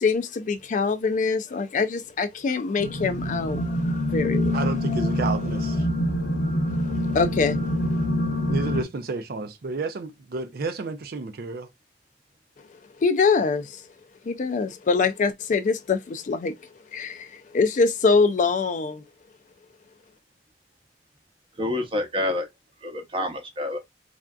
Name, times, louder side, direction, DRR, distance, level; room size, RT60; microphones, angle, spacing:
voice 1, 0.0-4.6 4.9-5.1 6.8-7.6 13.0-13.8 14.3-16.5 16.9-19.0, left 4 dB, 45° left, 0.4 m, -24 dB
sound 1, 2.8-8.8, left 1 dB, 70° left, 0.8 m, -25 dB
voice 2, 4.5-5.9 8.5-11.7, right 3 dB, 60° right, 0.4 m, -31 dB
voice 3, 21.6-22.5 22.8-23.8, left 1 dB, 30° right, 0.8 m, -27 dB
3.5 x 2.5 x 2.3 m
head